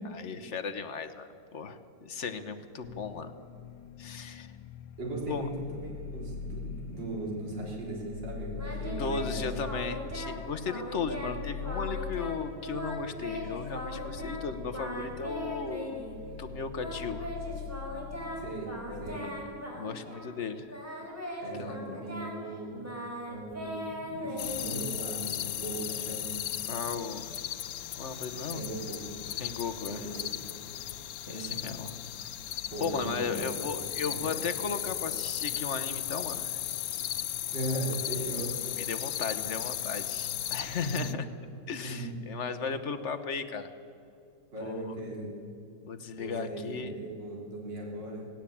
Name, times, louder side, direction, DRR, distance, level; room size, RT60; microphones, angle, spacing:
voice 1, 0.1-3.3 4.0-4.5 5.3-5.5 9.0-16.0 16.4-17.3 19.2-19.4 19.7-20.7 21.6-21.8 26.7-27.3 28.0-28.6 29.4-30.1 31.3-32.0 32.8-36.6 38.8-41.3 41.7-43.7 44.6-44.8 45.8-46.9, left 5 dB, 45° left, 9 dB, 1.2 m, -36 dB
sound 1, 2.8-19.2, left 7 dB, 80° left, 1.4 m, -42 dB
voice 2, 5.0-9.5 18.4-18.7 19.0-19.2 21.4-22.8 23.3-26.4 28.4-29.0 29.9-30.3 31.3-31.6 32.5-33.6 34.1-34.4 37.5-38.5 40.8-41.2 41.8-42.2 44.5-45.3 46.1-48.3, right 1 dB, 70° right, -2 dB, 4.4 m, -38 dB
Singing, 8.6-10.4 10.6-11.4 11.6-12.4 12.6-14.4 14.7-16.2 16.8-20.4 20.7-25.1, equal, 5° right, 4.0 m, -39 dB
sound 2, 24.4-41.1, left 12 dB, 65° left, 0.9 m, -36 dB
18.0 x 17.0 x 8.6 m, 2.6 s
omnidirectional pair, 2.0 m